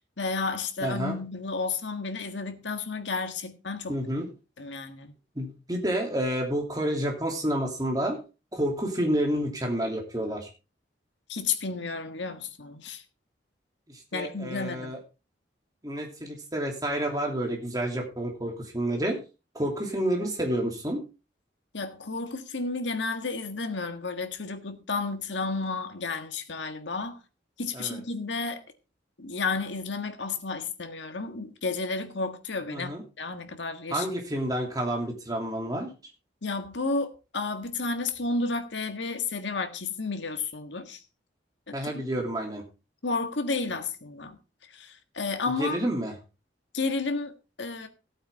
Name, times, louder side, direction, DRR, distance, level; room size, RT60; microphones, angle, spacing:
voice 1, 0.2-4.0 4.6-5.1 11.3-13.0 14.1-14.9 21.7-27.2 27.6-28.6 29.2-34.1 36.4-41.0 41.7-42.0 43.0-44.4 44.7-45.8 46.7-47.9, left 3 dB, 85° left, 1.6 m, -32 dB
voice 2, 0.8-1.1 3.9-4.3 5.3-8.2 8.5-10.5 13.9-15.0 15.8-19.2 19.5-21.0 27.7-28.0 32.7-33.0 33.9-35.9 41.7-42.6 45.6-46.1, right 1 dB, 20° right, 2.9 m, -29 dB
15.0 x 8.7 x 3.6 m
head